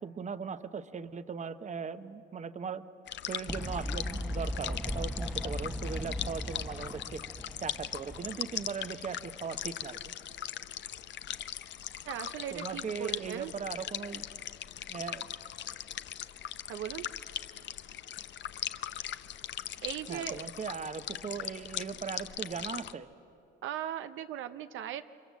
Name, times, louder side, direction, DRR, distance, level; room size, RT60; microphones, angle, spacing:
voice 1, 0.0-2.8 3.3-7.2 7.6-10.0 12.5-14.2 14.9-15.3 20.1-23.1, right 6 dB, 35° right, 11 dB, 0.9 m, -39 dB
sound 1, 3.1-22.9, left 11 dB, 65° left, 0.7 m, -40 dB
Fowl, 3.5-8.8, equal, 5° right, 0.9 m, -37 dB
voice 2, 12.0-13.5 16.7-17.1 19.8-20.5 23.6-25.0, right 10 dB, 85° right, 10 dB, 0.7 m, -38 dB
29.5 x 24.5 x 7.4 m, 2.8 s
cardioid pair, 90°, 20 cm